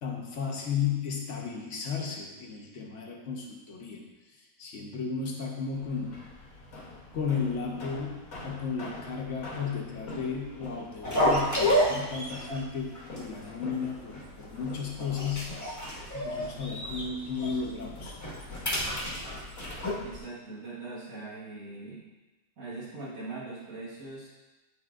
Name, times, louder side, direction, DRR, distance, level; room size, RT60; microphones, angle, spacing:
voice 1, 0.0-4.0 4.6-6.2 7.1-8.2 8.4-15.6 16.1-18.2, left 6 dB, 60° left, -1 dB, 1.1 m, -34 dB
sound 1, 5.7-20.2, left 2 dB, 85° left, 1.6 m, -46 dB
sound 2, 11.0-12.6 12.9-13.2 13.4-13.5 14.1-14.6 15.0-17.1 17.4-17.6 18.0-19.9, equal, 15° left, 1.0 m, -29 dB
voice 2, 20.0-22.0 22.6-24.3, right 3 dB, 75° right, -7 dB, 1.7 m, -41 dB
9.7 x 4.0 x 2.4 m, 1.1 s
omnidirectional pair, 1.5 m